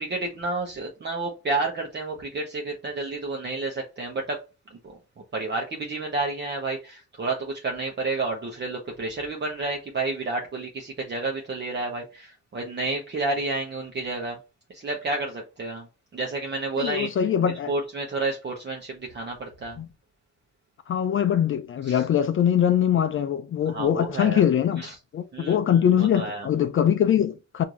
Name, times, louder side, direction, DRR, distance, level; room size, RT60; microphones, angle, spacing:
voice 1, 0.0-4.4 4.8-5.0 5.3-14.4 14.7-15.9 16.1-17.1 17.7-19.8 21.8-22.0 23.7-24.4 24.8-24.9 25.3-26.5, right 3 dB, 35° right, 1.0 m, -30 dB
voice 2, 16.8-17.7 19.8-19.9 20.9-24.8 25.1-27.6, left 9 dB, 45° left, 0.4 m, -22 dB
4.5 x 2.7 x 2.5 m
cardioid pair, 90°, 30 cm